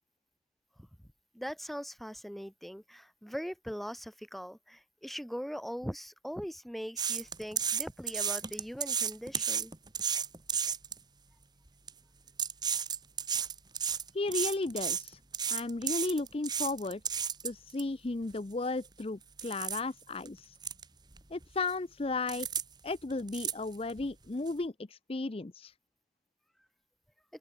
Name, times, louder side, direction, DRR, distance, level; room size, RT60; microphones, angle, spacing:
voice 1, 1.3-9.7, equal, ahead, 5.3 m, -41 dB
sound 1, 7.0-11.0 11.7-11.9 12.3-17.8 18.3-18.4 18.8-19.0 19.4-19.8 20.2-20.3 20.6-20.8 21.1-21.7 22.3-22.6 22.9-24.0 24.5-24.6, right 7 dB, 25° right, 1.7 m, -33 dB
voice 2, 14.1-15.2 15.5-17.0 17.4-20.6 21.3-22.5 22.8-25.7, left 3 dB, 35° left, 0.6 m, -34 dB
open air
head